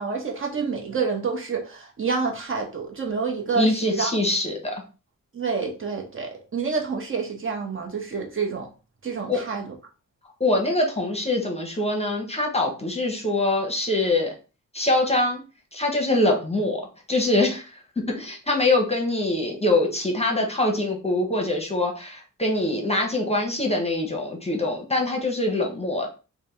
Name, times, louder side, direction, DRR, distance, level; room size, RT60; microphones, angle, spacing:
voice 1, 0.0-4.2 5.3-8.7 9.0-9.7, right 5 dB, 40° right, 1.0 m, -28 dB
voice 2, 3.5-4.8 9.3-9.4 10.4-14.3 14.7-15.4 15.7-16.8 17.1-17.8 18.1-26.1, left 2 dB, 20° left, 0.8 m, -24 dB
3.4 x 2.2 x 4.3 m
wide cardioid pair, 115°, 32 cm